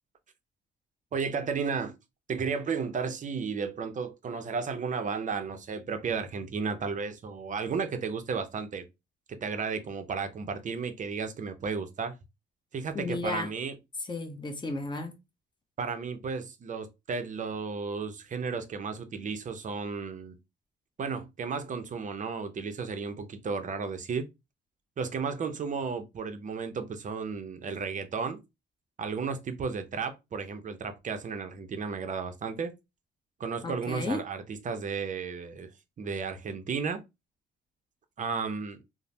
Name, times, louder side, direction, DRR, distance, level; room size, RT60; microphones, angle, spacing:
voice 1, 1.1-1.9 2.3-8.9 9.3-12.2 12.7-13.8 15.8-20.4 21.0-24.2 25.0-28.4 29.0-32.7 33.4-35.7 36.0-37.0 38.2-38.8, right 5 dB, 40° right, 0.5 m, -33 dB
voice 2, 12.9-13.5 14.1-15.2 33.6-34.2, left 2 dB, 25° left, 0.8 m, -33 dB
3.1 x 2.0 x 2.6 m
cardioid pair, 90°, 20 cm